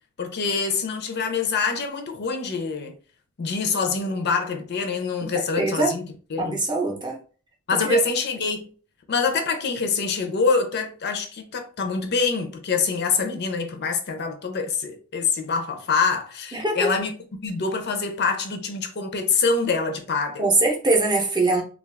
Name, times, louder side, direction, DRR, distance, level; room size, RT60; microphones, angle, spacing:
voice 1, 0.2-3.0 3.4-6.0 6.3-6.6 7.7-8.7 9.1-17.1 17.4-20.5, left 4 dB, 50° left, 0.5 m, -25 dB
voice 2, 5.6-5.9 6.4-7.2 7.8-8.0 16.5-16.9 20.4-21.6, right 2 dB, 20° right, 0.6 m, -22 dB
2.4 x 2.3 x 3.3 m
head